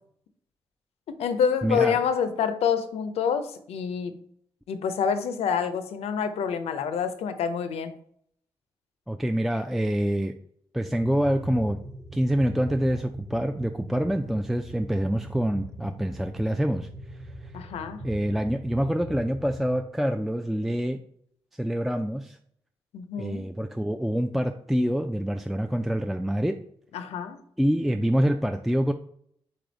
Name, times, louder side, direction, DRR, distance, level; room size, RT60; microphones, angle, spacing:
voice 1, 1.1-4.2 4.7-7.9 17.5-18.0 22.9-23.5 26.9-27.4, left 7 dB, 85° left, 10 dB, 0.5 m, -27 dB
voice 2, 1.6-2.0 9.1-10.3 10.7-11.8 12.1-17.6 18.0-21.0 21.5-22.4 23.2-26.6 27.6-28.9, equal, ahead, 6 dB, 0.3 m, -26 dB
sound 1, 10.9-19.8, right 1 dB, 30° right, 0.9 m, -40 dB
3.9 x 3.4 x 3.9 m, 0.66 s
supercardioid pair, 55°, 10 cm